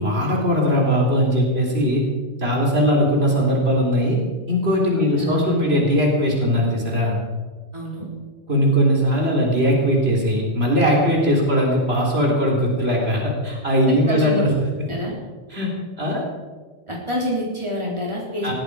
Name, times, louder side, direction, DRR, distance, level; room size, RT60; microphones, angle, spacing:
voice 1, 0.0-2.0 2.4-4.2 4.5-7.2 8.5-14.5 15.5-15.7 16.0-16.2 18.4-18.5, equal, 70° right, -1 dB, 4.1 m, -19 dB
voice 2, 5.0-5.6 7.7-8.1 13.9-14.4 14.8-15.2 16.9-18.5, left 1 dB, 25° right, -2 dB, 3.8 m, -27 dB
19.0 x 15.0 x 5.0 m, 1.4 s
omnidirectional pair, 1.1 m